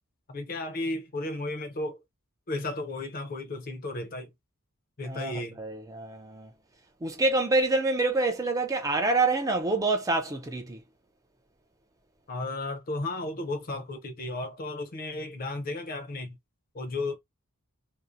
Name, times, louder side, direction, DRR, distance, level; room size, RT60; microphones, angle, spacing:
voice 1, 0.3-2.0 2.5-4.3 5.0-5.6 12.3-16.4 16.7-17.2, left 2 dB, 40° left, 0.6 m, -34 dB
voice 2, 5.1-6.5 7.0-10.8, right 2 dB, 15° right, 0.4 m, -27 dB
2.6 x 2.0 x 2.4 m
head